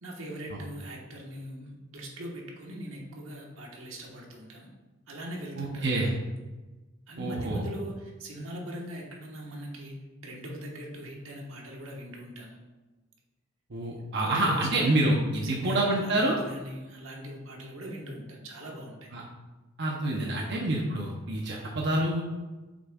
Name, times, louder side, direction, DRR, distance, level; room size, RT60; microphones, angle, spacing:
voice 1, 0.0-4.7 5.1-6.1 7.1-12.6 13.8-19.1, equal, 90° right, -1 dB, 1.4 m, -41 dB
voice 2, 5.6-6.1 7.2-7.6 13.7-16.4 19.1-19.2 19.8-22.2, right 1 dB, 60° right, -1 dB, 0.8 m, -27 dB
7.7 x 6.2 x 2.4 m, 1.2 s
head